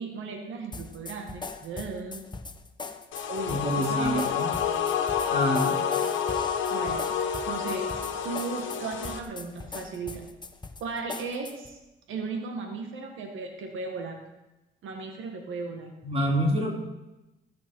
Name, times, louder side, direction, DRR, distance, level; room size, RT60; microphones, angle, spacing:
voice 1, 0.0-2.2 3.3-4.4 6.7-7.9 8.2-10.3 10.8-11.8 12.1-14.3 14.8-15.9, right 4 dB, 80° right, 3 dB, 1.8 m, -36 dB
sound 1, 0.7-11.7, left 3 dB, 20° left, 1.2 m, -40 dB
sound 2, 3.1-9.2, left 7 dB, 75° left, 1.6 m, -29 dB
voice 2, 3.5-4.5 5.3-5.8 16.0-16.7, equal, 30° right, 0 dB, 3.6 m, -27 dB
19.5 x 9.8 x 4.6 m, 1.0 s
cardioid pair, 90°, 20 cm